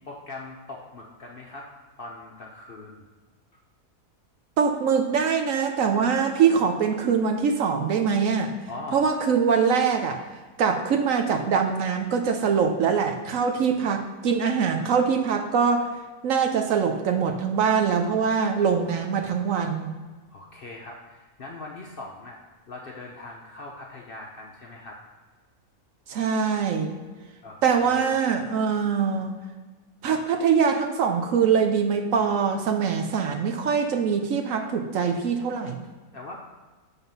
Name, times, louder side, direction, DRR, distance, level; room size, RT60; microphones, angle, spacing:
voice 1, 0.0-1.7 2.0-3.1 8.7-9.2 20.3-22.4 22.7-25.0 27.4-28.1 36.1-36.4, left 2 dB, 50° left, -1 dB, 0.7 m, -41 dB
voice 2, 4.6-8.5 8.9-10.2 10.6-15.9 16.2-20.0 26.1-26.9 27.6-29.3 30.0-35.9, right 6 dB, 65° right, 4 dB, 0.9 m, -23 dB
7.5 x 4.0 x 5.4 m, 1.4 s
omnidirectional pair, 1.6 m